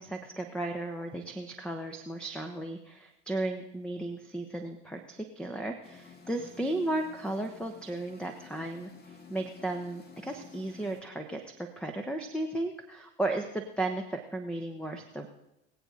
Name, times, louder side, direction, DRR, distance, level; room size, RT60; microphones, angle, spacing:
voice 1, 0.0-11.4 11.8-15.3, right 2 dB, 5° left, 6 dB, 1.1 m, -35 dB
sound 1, 5.8-11.0, left 5 dB, 30° left, 1.9 m, -52 dB
22.5 x 8.1 x 4.0 m, 0.89 s
figure-of-eight pair, 75°, 34 cm